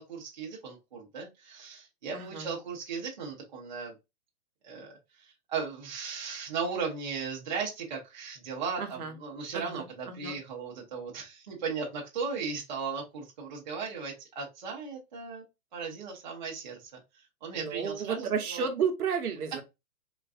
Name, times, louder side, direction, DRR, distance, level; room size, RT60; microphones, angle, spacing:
voice 1, 0.0-3.9 4.6-4.9 5.5-15.4 15.7-16.8 17.4-18.7, right 5 dB, 30° right, 0.7 m, -36 dB
voice 2, 2.1-2.5 8.8-9.2 9.5-10.4 17.5-19.6, right 6 dB, 75° right, 0.9 m, -32 dB
3.9 x 2.4 x 2.4 m
hypercardioid pair, 175°, 45 cm